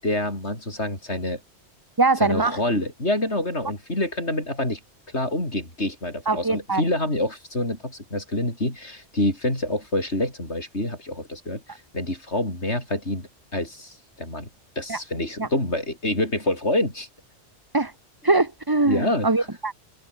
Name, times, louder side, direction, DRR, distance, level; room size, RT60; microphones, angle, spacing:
voice 1, 0.0-1.4 2.2-4.8 5.1-14.5 14.8-17.1 18.9-19.3, left 1 dB, 70° left, 7.7 m, -27 dB
voice 2, 2.0-2.6 6.3-6.8 14.9-15.0 15.4-15.5 17.7-17.9 18.2-19.7, right 3 dB, 20° right, 1.6 m, -22 dB
omnidirectional pair, 1.2 m